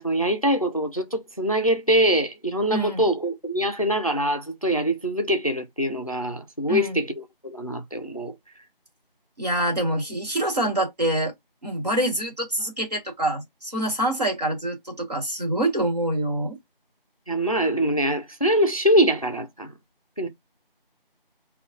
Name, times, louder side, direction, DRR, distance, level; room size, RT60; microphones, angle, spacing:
voice 1, 0.0-7.1 7.4-8.3 17.3-19.7 20.2-20.3, equal, 40° left, 0.5 m, -23 dB
voice 2, 2.7-3.1 6.7-7.0 9.4-11.3 11.6-16.6, right 1 dB, 45° right, 1.6 m, -26 dB
5.1 x 2.3 x 2.6 m
figure-of-eight pair, 175°, 29 cm